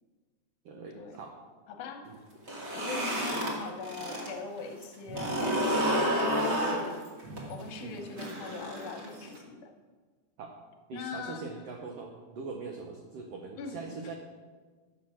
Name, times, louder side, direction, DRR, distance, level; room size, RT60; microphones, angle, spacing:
voice 1, 0.6-1.3 2.0-2.2 7.8-8.0 10.4-10.5 10.9-14.1, right 4 dB, 90° right, 1 dB, 1.3 m, -42 dB
voice 2, 1.7-2.2 2.7-7.0 7.5-9.7 10.9-11.4 13.6-13.8, left 5 dB, 75° left, 4 dB, 2.3 m, -41 dB
sound 1, 2.3-4.3 4.6-9.4, equal, 40° right, 0.9 m, -30 dB
8.4 x 5.8 x 6.2 m, 1.4 s
omnidirectional pair, 3.8 m